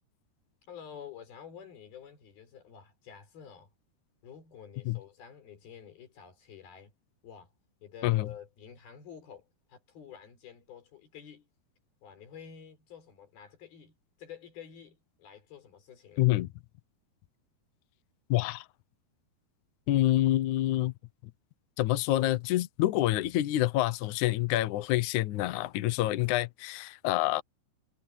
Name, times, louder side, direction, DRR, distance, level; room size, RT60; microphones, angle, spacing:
voice 1, 0.7-3.7 4.2-6.9 7.2-7.5 7.8-11.5 12.0-16.3, left 8 dB, 65° left, 6.1 m, -49 dB
voice 2, 16.2-16.5 18.3-18.6 19.9-20.9 21.8-27.4, left 15 dB, 80° left, 1.7 m, -27 dB
omnidirectional pair, 4.8 m